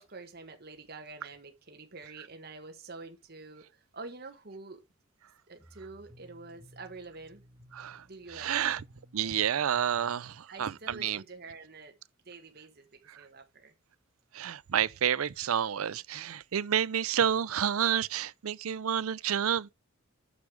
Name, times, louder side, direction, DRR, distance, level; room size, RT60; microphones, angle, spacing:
voice 1, 0.0-4.8 5.5-7.4 8.1-8.8 10.5-11.9 12.2-13.7, right 3 dB, 50° right, 1.4 m, -47 dB
sound 1, 5.6-10.9, equal, 15° right, 2.0 m, -57 dB
voice 2, 7.7-8.0 8.3-8.8 9.1-11.2 14.3-19.7, right 9 dB, 85° right, 0.5 m, -29 dB
8.3 x 6.2 x 4.9 m
head